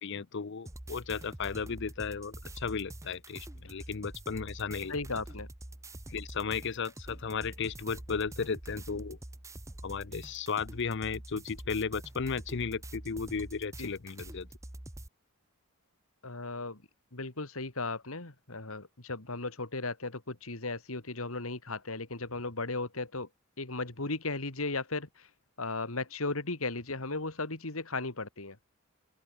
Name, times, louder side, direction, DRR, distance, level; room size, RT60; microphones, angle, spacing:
voice 1, 0.0-5.0 6.1-9.2 9.8-14.5, left 5 dB, 55° left, 0.6 m, -35 dB
sound 1, 0.6-15.1, right 1 dB, 15° right, 0.9 m, -46 dB
voice 2, 4.9-5.5 13.8-13.9 16.2-16.8 17.1-23.3 23.6-25.3 25.6-28.6, left 3 dB, 75° left, 2.7 m, -36 dB
open air
head